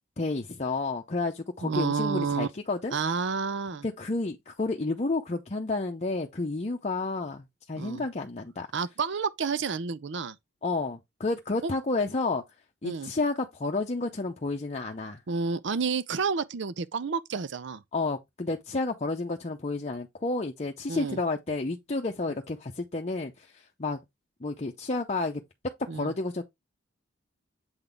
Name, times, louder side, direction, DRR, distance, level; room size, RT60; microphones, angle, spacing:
voice 1, 0.2-3.0 3.8-8.7 10.6-12.4 12.8-15.2 17.9-24.0 24.4-25.4 25.9-26.4, left 3 dB, 35° left, 0.7 m, -31 dB
voice 2, 1.6-2.5 2.9-3.8 7.7-8.0 8.7-10.3 11.6-11.7 12.8-13.1 15.3-17.8 20.9-21.2 25.9-26.1, right 5 dB, 65° right, 0.6 m, -30 dB
7.8 x 4.0 x 3.5 m
head